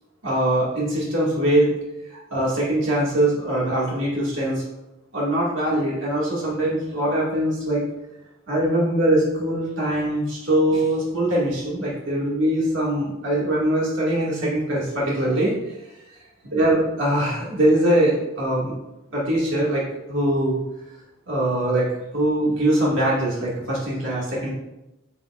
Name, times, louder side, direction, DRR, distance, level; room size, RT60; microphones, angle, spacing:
voice 1, 0.2-1.7 2.1-4.6 5.1-7.8 8.5-15.5 16.5-18.8 19.1-20.6 21.3-21.9 22.1-24.5, right 1 dB, 70° right, -6 dB, 1.9 m, -22 dB
8.8 x 6.4 x 2.4 m, 0.94 s
head